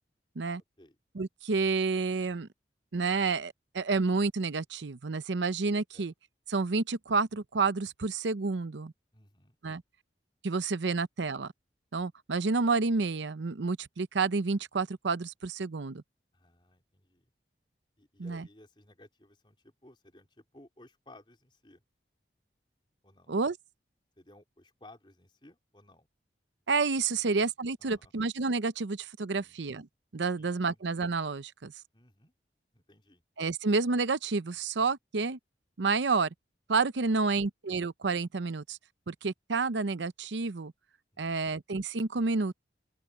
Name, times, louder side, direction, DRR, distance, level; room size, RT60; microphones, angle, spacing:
voice 1, 1.1-2.5 2.9-6.1 6.5-8.9 9.6-9.8 10.4-11.5 11.9-16.0 18.2-18.5 23.3-23.5 26.7-29.9 30.1-31.7 33.4-35.4 35.8-36.3 36.7-38.8 39.1-40.7 41.2-42.6, right 4 dB, 85° right, 0.7 m, -29 dB
voice 2, 9.1-9.6 16.3-17.3 18.0-21.8 23.0-23.3 24.2-26.1 27.1-27.3 27.8-28.1 29.3-29.6 30.4-30.8 31.9-32.3 32.7-33.2 37.2-37.5, left 1 dB, 25° left, 4.2 m, -58 dB
open air
head